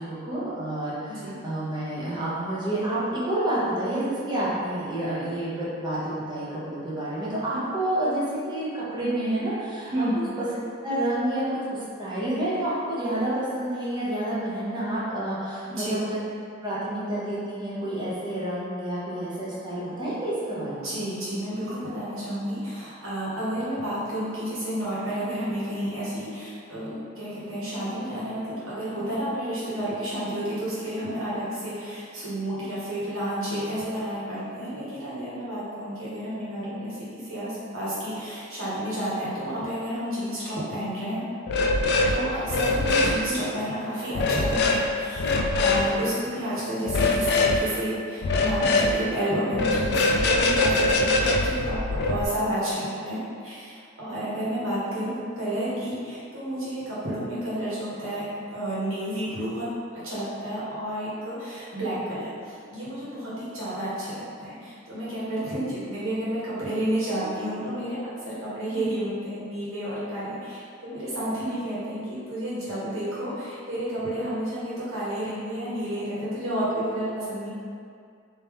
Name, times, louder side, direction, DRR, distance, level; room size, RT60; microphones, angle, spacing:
voice 1, 0.0-8.2 8.5-10.1 10.4-10.5 10.8-16.3 16.6-21.0 43.1-43.4 67.4-67.5, right 1 dB, 25° right, -9 dB, 0.9 m, -29 dB
voice 2, 9.8-10.2 15.7-15.9 20.8-41.2 42.1-77.5, equal, 80° right, -9 dB, 1.3 m, -31 dB
sound 1, 41.5-42.2 42.4-43.2 44.2-44.8 45.2-45.8 46.9-47.6 48.2-48.9 49.5-52.2, left 2 dB, 55° left, 0.3 m, -22 dB
3.4 x 2.7 x 3.5 m, 2.3 s
head